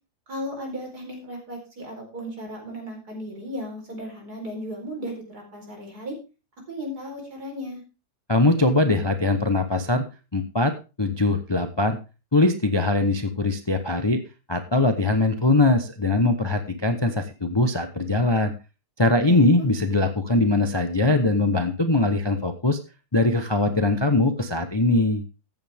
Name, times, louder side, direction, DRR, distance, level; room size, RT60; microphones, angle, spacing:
voice 1, 0.3-6.2 6.7-7.8 19.2-19.4, equal, 65° right, 1 dB, 4.8 m, -35 dB
voice 2, 8.3-10.0 10.3-10.7 11.0-12.0 12.3-14.2 14.5-18.5 19.0-22.8 23.1-25.2, left 2 dB, 20° left, 7 dB, 0.7 m, -21 dB
14.5 x 8.5 x 3.5 m, 0.30 s
omnidirectional pair, 1.8 m